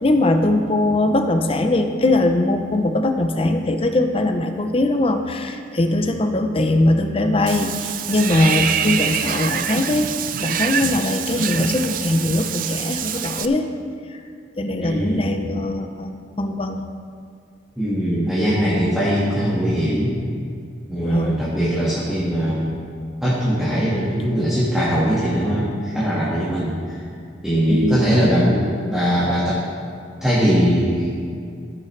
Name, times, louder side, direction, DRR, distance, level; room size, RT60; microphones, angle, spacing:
voice 1, 0.0-10.1 10.4-13.7 14.1-14.2 14.6-16.8 21.0-21.4 27.7-28.0, left 2 dB, 30° left, 6 dB, 0.6 m, -21 dB
Water / Bathtub (filling or washing), 7.5-13.5, right 8 dB, 45° right, 0.4 m, -25 dB
voice 2, 14.8-15.4 17.8-20.1 20.9-22.7 23.2-27.0 27.4-29.6 30.2-31.1, equal, 5° right, -10 dB, 1.7 m, -20 dB
16.0 x 8.5 x 3.3 m, 2.4 s
head